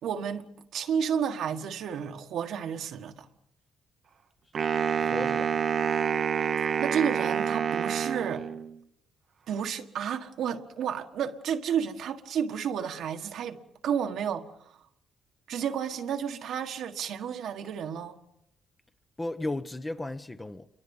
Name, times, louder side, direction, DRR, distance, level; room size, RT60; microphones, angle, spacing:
voice 1, 0.0-3.3 6.8-8.5 9.5-13.6 13.8-14.5 15.5-18.2, right 8 dB, 75° right, 1.6 m, -31 dB
Wind instrument woodwind instrument, 4.5-8.8, right 7 dB, 55° right, 0.9 m, -28 dB
voice 2, 5.0-5.6 19.2-20.7, left 2 dB, 20° left, 1.1 m, -34 dB
29.0 x 23.5 x 5.5 m
cardioid pair, 90°, 0 cm